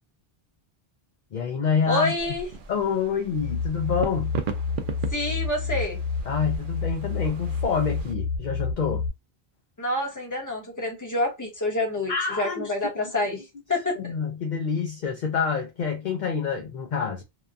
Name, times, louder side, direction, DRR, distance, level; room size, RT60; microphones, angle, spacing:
voice 1, 1.3-2.1 2.7-4.4 6.3-9.1 12.1-12.7 14.0-17.2, left 6 dB, 55° left, 0.6 m, -27 dB
voice 2, 1.9-2.5 5.1-6.0 9.8-14.1, left 2 dB, 20° left, 0.9 m, -27 dB
sound 1, 2.2-8.1, right 6 dB, 60° right, 0.6 m, -38 dB
sound 2, 3.3-9.1, left 5 dB, 90° left, 1.1 m, -29 dB
2.8 x 2.2 x 2.5 m
omnidirectional pair, 1.0 m